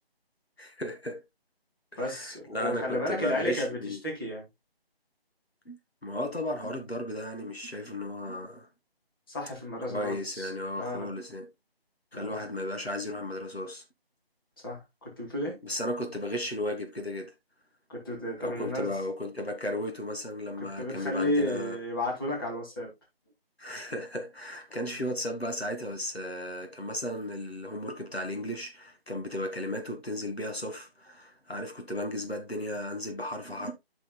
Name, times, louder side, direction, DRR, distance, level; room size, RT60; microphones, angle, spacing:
voice 1, 0.6-1.2 1.9-4.0 5.7-5.8 6.0-8.7 9.9-11.5 12.1-13.8 15.6-17.3 18.4-21.8 23.6-33.7, left 1 dB, 80° left, 1.9 m, -35 dB
voice 2, 2.0-4.4 9.3-11.1 12.1-12.3 14.6-15.6 17.9-18.9 20.6-22.9, left 1 dB, 20° left, 2.4 m, -33 dB
11.5 x 6.2 x 2.2 m
figure-of-eight pair, 160°, 31 cm